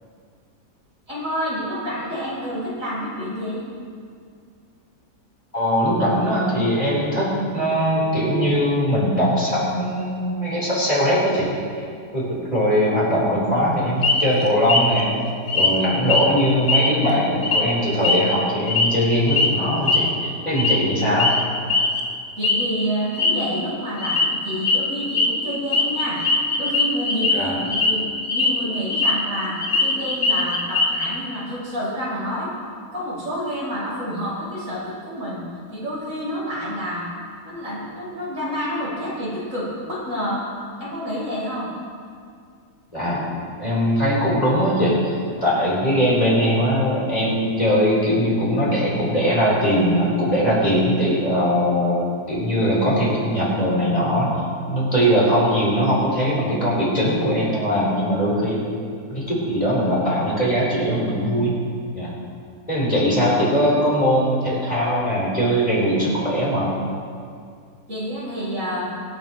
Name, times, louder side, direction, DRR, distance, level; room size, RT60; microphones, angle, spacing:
voice 1, 1.1-3.6 22.4-26.2 26.6-27.5 27.8-28.1 28.3-32.5 32.9-35.4 35.7-37.1 37.4-40.5 40.8-41.7 67.9-68.9, equal, 60° right, -7 dB, 4.5 m, -28 dB
voice 2, 5.5-11.4 12.1-15.1 15.5-21.4 27.3-27.6 42.9-43.3 43.6-54.3 54.7-58.6 59.1-61.6 61.9-62.1 62.7-66.7, equal, 25° left, -7 dB, 4.1 m, -20 dB
sound 1, 14.0-14.3 14.7-15.0 15.5-15.7 16.0-16.3 16.7-17.1 17.4-17.6 18.0-18.9 19.3-19.5 19.9-20.1 20.6-20.9 21.2-21.4 21.7-22.0 22.4-22.6 23.0-23.3 24.0-24.3 24.6-24.8 25.1-25.3 25.7-27.3 27.7-27.9 28.2-29.1 29.4-31.1, left 3 dB, 40° left, 1.3 m, -20 dB
25.0 x 9.1 x 3.1 m, 2.2 s
omnidirectional pair, 1.6 m